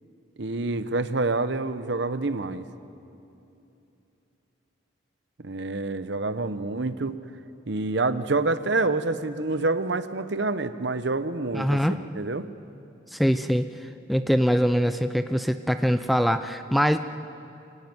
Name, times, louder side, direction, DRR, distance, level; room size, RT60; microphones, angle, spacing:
voice 1, 0.4-2.7 5.4-7.2 7.7-12.5, right 3 dB, 60° right, 12 dB, 0.9 m, -27 dB
voice 2, 11.5-12.0 13.1-13.7 14.1-17.0, equal, ahead, 9 dB, 0.5 m, -23 dB
27.0 x 15.0 x 9.5 m, 2.8 s
head